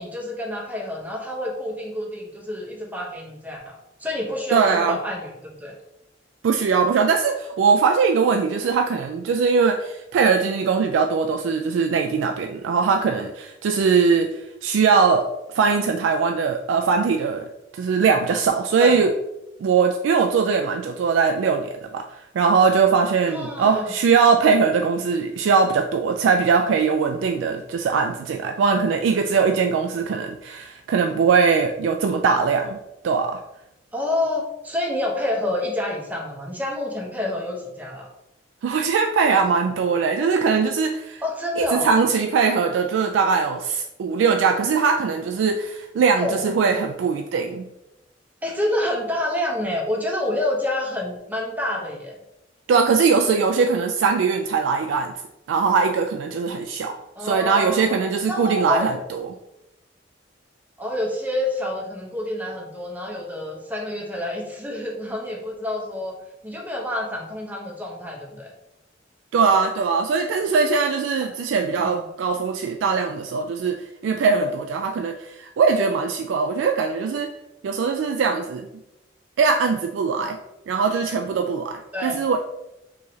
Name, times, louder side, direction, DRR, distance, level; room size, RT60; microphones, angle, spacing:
voice 1, 0.0-5.3 5.6-5.7 18.8-19.0 23.3-23.9 33.9-38.1 41.2-41.9 46.2-46.4 48.4-52.2 57.2-57.9 58.3-58.9 60.8-66.1 66.4-68.5 71.8-71.9 80.2-80.3 81.9-82.2, left 1 dB, 10° right, -1 dB, 0.8 m, -28 dB
voice 2, 4.5-5.0 6.4-17.5 17.7-19.1 19.6-32.8 33.0-33.4 38.6-41.2 41.6-47.7 52.7-55.1 55.5-56.9 57.2-59.3 69.3-77.3 77.6-78.7 79.4-80.4 80.7-82.4, right 5 dB, 85° right, 4 dB, 0.3 m, -21 dB
4.5 x 3.1 x 2.8 m, 0.89 s
head